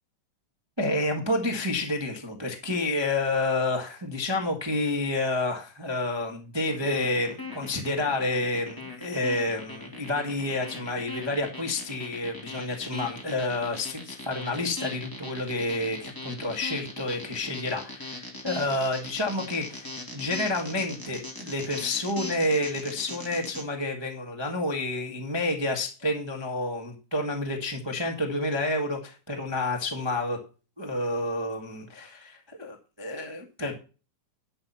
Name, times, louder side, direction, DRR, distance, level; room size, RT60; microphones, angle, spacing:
voice 1, 0.8-30.4 30.8-33.8, left 2 dB, 15° right, 2 dB, 0.8 m, -29 dB
sound 1, 6.7-23.6, left 2 dB, 5° left, 2.2 m, -39 dB
11.0 x 6.0 x 5.6 m, 0.34 s
omnidirectional pair, 3.6 m